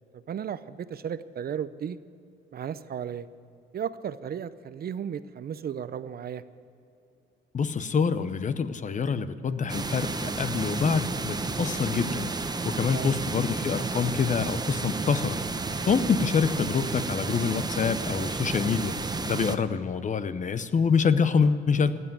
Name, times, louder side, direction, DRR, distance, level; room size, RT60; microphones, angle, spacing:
voice 1, 0.1-2.0 2.5-3.3 3.7-6.4 12.9-13.2 16.1-16.2, right 8 dB, 50° right, 14 dB, 0.6 m, -34 dB
voice 2, 7.5-12.3 12.6-15.4 15.9-18.9 19.3-22.0, left 6 dB, 40° left, 13 dB, 0.8 m, -26 dB
sound 1, 9.7-19.6, right 3 dB, 20° right, 0.8 m, -32 dB
15.0 x 8.3 x 9.1 m, 2.7 s
cardioid pair, 90°, 20 cm